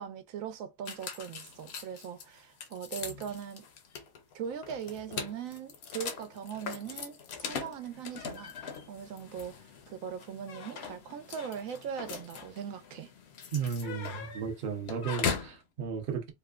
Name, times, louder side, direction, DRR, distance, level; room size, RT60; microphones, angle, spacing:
voice 1, 0.0-3.6 4.3-9.6 9.9-13.1, right 8 dB, 85° right, 1.0 m, -40 dB
sound 1, 0.8-15.6, left 6 dB, 60° left, 0.8 m, -40 dB
voice 2, 13.5-16.3, right 6 dB, 50° right, 0.7 m, -34 dB
3.0 x 2.1 x 2.2 m
omnidirectional pair, 1.4 m